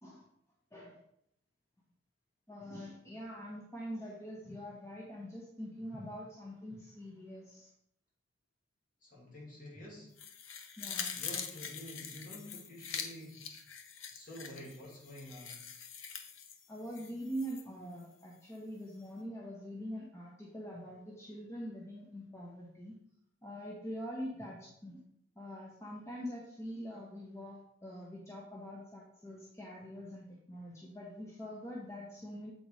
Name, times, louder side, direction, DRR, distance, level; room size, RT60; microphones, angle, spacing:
voice 1, 0.7-1.0 2.5-7.7 10.8-11.3 16.7-22.9 23.4-25.0 25.4-32.5, equal, 15° left, -3 dB, 1.0 m, -44 dB
voice 2, 9.0-10.1 11.1-13.4 14.1-15.6, left 1 dB, 45° left, -4 dB, 2.4 m, -49 dB
sound 1, 10.2-17.6 18.0-18.1, left 7 dB, 85° left, 0.8 m, -44 dB
7.8 x 4.0 x 4.8 m, 0.73 s
head